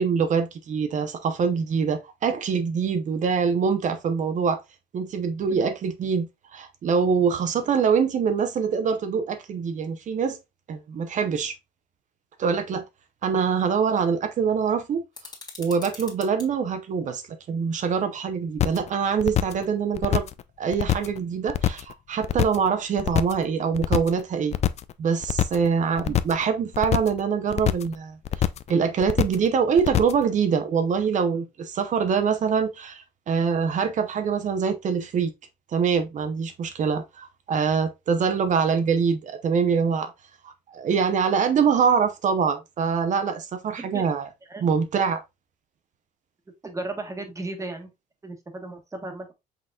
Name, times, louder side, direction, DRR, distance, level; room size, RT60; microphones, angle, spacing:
voice 1, 0.0-4.6 4.9-10.4 10.7-11.5 12.4-12.8 13.2-15.0 15.6-17.2 17.5-20.3 20.6-24.5 25.0-28.2 28.7-35.3 35.7-40.1 40.4-44.3 44.6-45.2, right 6 dB, 45° right, 0.8 m, -24 dB
sound 1, 15.1-16.5, left 4 dB, 25° left, 1.7 m, -42 dB
sound 2, 18.6-18.9 19.2-19.6 19.9-20.4 20.7-21.2 21.5-21.9 22.2-22.7 23.0-23.4 23.7-24.2 24.5-24.9 25.2-25.7 26.0-26.4 26.7-27.2 27.5-27.9 28.2-28.7 29.0-29.5 29.8-30.2, left 11 dB, 40° left, 0.4 m, -24 dB
voice 2, 46.6-47.9 48.2-49.3, right 2 dB, 20° right, 1.3 m, -35 dB
5.6 x 4.0 x 2.3 m
cardioid pair, 110°, 17 cm